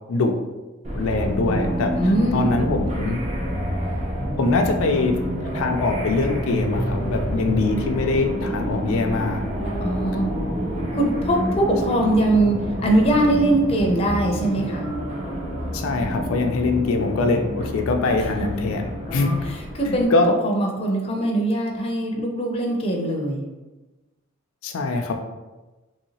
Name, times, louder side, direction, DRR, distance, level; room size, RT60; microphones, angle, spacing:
sound 1, 0.8-20.0, equal, 35° right, 0.6 m, -28 dB
voice 1, 0.9-1.9 2.3-3.2 4.4-5.2 5.5-9.4 15.7-19.3 19.9-20.3 24.6-25.1, left 3 dB, 85° left, 4 dB, 0.4 m, -23 dB
voice 2, 1.9-2.6 9.8-10.3 10.9-14.9 19.1-20.1 20.4-23.4, right 1 dB, 30° left, 0 dB, 0.5 m, -22 dB
3.0 x 2.8 x 2.8 m, 1.1 s
head